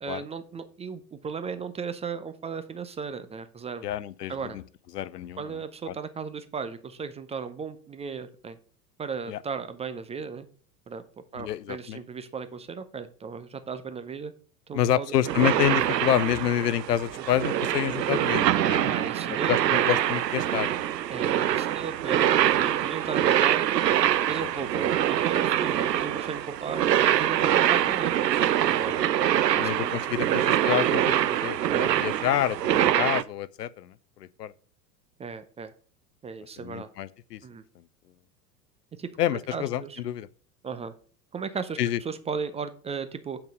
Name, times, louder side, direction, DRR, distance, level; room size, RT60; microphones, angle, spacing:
voice 1, 0.0-3.8 4.3-4.6 5.4-8.6 9.0-10.5 10.9-11.0 11.3-14.3 14.7-15.1 18.8-19.8 21.1-23.6 24.3-26.8 27.1-28.1 28.6-29.0 29.6-30.4 31.7-32.0 32.7-32.9 35.2-35.7 36.2-36.9 37.4-37.6 39.0-39.1 39.5-40.0 40.6-40.9 41.3-43.4, right 5 dB, 15° right, 0.5 m, -36 dB
voice 2, 3.8-4.6 4.9-5.4 5.9-6.0 9.3-9.4 11.4-12.0 14.7-18.9 19.5-20.8 24.4-24.5 29.0-29.1 29.6-33.9 34.2-34.5 36.6-37.4 39.2-40.3 41.8-42.0, left 11 dB, 75° left, 0.6 m, -28 dB
sound 1, 15.2-33.2, right 11 dB, 85° right, 0.6 m, -24 dB
7.4 x 5.8 x 5.2 m
figure-of-eight pair, 85°, 49 cm